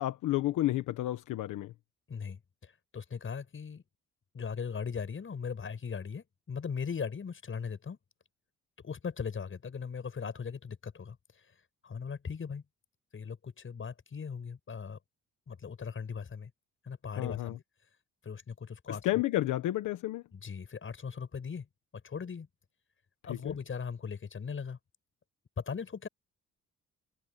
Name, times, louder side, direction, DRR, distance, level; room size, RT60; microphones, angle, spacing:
voice 1, 0.0-1.7 17.2-17.6 18.9-20.2 23.3-23.5, left 15 dB, 85° left, 1.3 m, -31 dB
voice 2, 2.1-3.8 4.3-8.0 8.8-11.2 11.8-12.6 13.1-15.0 15.5-16.5 16.9-17.6 18.2-19.0 20.3-21.7 22.0-22.5 23.2-24.8 25.6-26.1, left 6 dB, 45° left, 7.3 m, -39 dB
cardioid pair, 90°, 30 cm